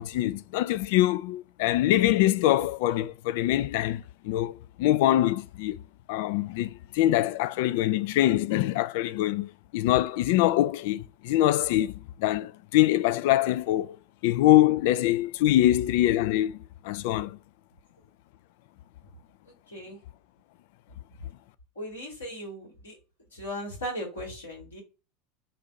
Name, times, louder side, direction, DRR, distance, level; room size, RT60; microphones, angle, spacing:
voice 1, 0.0-5.8 6.1-14.0 14.2-17.4, left 14 dB, 60° left, 0.3 m, -24 dB
voice 2, 19.7-20.0 21.7-23.0 23.3-24.8, equal, 85° left, 2.4 m, -37 dB
4.2 x 2.6 x 4.6 m
figure-of-eight pair, 80°, 0 cm